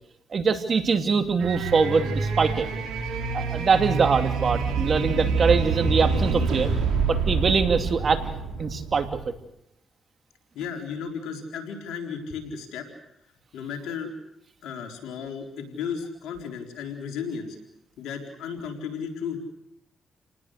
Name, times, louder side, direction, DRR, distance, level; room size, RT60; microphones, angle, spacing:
voice 1, 0.3-2.7 3.3-6.7 7.1-8.3 8.6-9.1, right 5 dB, 55° right, 7 dB, 2.7 m, -23 dB
sound 1, 1.4-9.3, right 4 dB, 85° right, 4.3 m, -27 dB
voice 2, 10.5-12.9 13.5-14.1 14.6-17.6 18.0-19.4, left 6 dB, 90° left, 2 dB, 4.3 m, -34 dB
29.5 x 19.5 x 6.7 m, 0.81 s
supercardioid pair, 55°, 0 cm